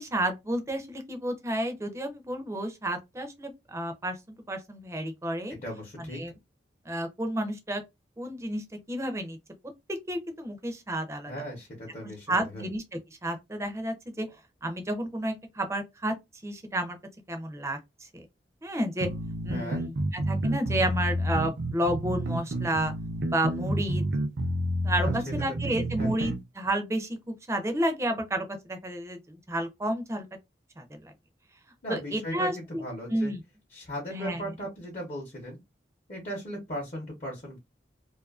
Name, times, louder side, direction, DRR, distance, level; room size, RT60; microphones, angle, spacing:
voice 1, 0.0-4.2 4.5-5.5 6.1-6.3 6.9-7.8 8.2-9.4 9.9-11.3 12.3-12.8 13.2-14.3 14.6-16.1 16.4-17.0 17.3-18.2 18.6-19.1 19.4-22.9 23.3-24.0 24.8-30.3 30.8-31.1 31.9-32.8 33.1-33.4 34.1-34.5, right 1 dB, 15° right, 0.5 m, -31 dB
voice 2, 5.6-6.2 11.3-12.7 19.5-19.8 25.0-25.3 26.0-26.3 31.8-33.3 33.7-35.6 36.1-37.6, equal, 45° left, 0.8 m, -37 dB
sound 1, 19.0-26.4, right 1 dB, 80° right, 0.5 m, -29 dB
2.5 x 2.4 x 2.3 m
head